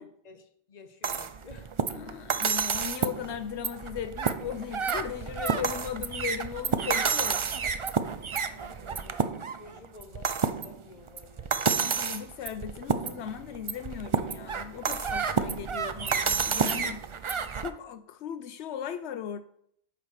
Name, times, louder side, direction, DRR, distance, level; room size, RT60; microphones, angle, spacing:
voice 1, 0.0-1.7 8.5-10.3 10.6-11.7, left 4 dB, 40° left, 1.0 m, -52 dB
sound 1, 1.0-17.7, right 6 dB, 45° right, 0.4 m, -30 dB
voice 2, 1.9-7.4 11.8-17.0 17.5-19.4, left 9 dB, 80° left, 0.9 m, -37 dB
9.2 x 4.7 x 6.4 m
omnidirectional pair, 1.1 m